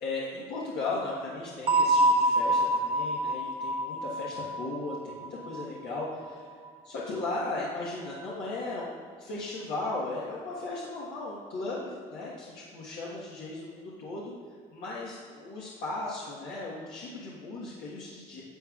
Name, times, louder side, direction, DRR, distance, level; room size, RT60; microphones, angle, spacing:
voice 1, 0.0-6.5 6.8-14.3 14.7-18.4, left 2 dB, 85° left, -6 dB, 1.4 m, -36 dB
sound 1, 1.7-6.3, right 1 dB, 35° right, 0.6 m, -27 dB
11.5 x 7.4 x 2.4 m, 2.1 s
cardioid pair, 110°, 17 cm